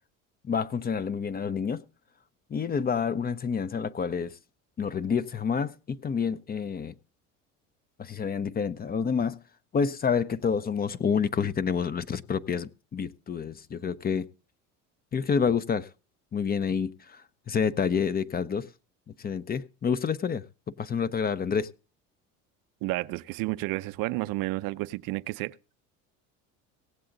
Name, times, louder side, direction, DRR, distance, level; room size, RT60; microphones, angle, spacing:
voice 1, 0.4-1.8 2.5-4.4 4.8-6.9 8.0-9.4 9.7-14.3 15.1-15.9 16.3-17.2 17.5-18.7 19.2-20.4 20.8-21.7, left 6 dB, 25° left, 0.5 m, -28 dB
voice 2, 22.8-25.6, right 20 dB, 60° right, 0.6 m, -31 dB
17.0 x 7.8 x 3.8 m
hypercardioid pair, 80°, 38 cm